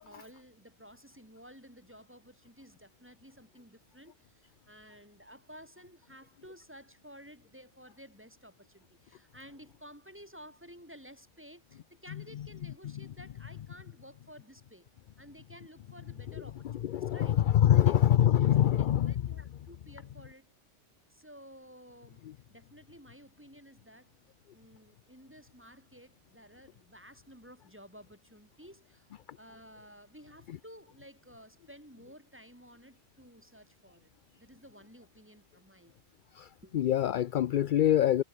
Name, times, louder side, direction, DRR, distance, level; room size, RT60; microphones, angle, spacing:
voice 1, 0.0-14.9 15.2-17.4 17.7-18.1 18.4-20.5 21.1-22.2 22.5-24.1 24.5-34.1 34.4-36.0 36.6-36.8, equal, 10° right, 7.7 m, -54 dB
voice 2, 16.8-19.1 36.4-36.5 36.7-38.2, left 11 dB, 60° left, 0.5 m, -24 dB
omnidirectional pair, 1.3 m